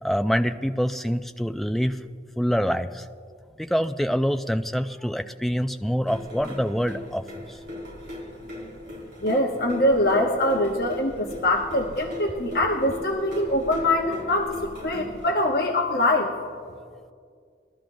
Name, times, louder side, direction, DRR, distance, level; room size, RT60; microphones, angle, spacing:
voice 1, 0.0-2.0 2.4-3.0 3.6-7.6, equal, ahead, 8 dB, 0.3 m, -25 dB
sound 1, 6.1-15.2, left 1 dB, 75° right, 3.3 m, -38 dB
voice 2, 9.2-16.3, left 1 dB, 60° left, 1 dB, 0.9 m, -23 dB
21.0 x 13.0 x 2.6 m, 2.2 s
head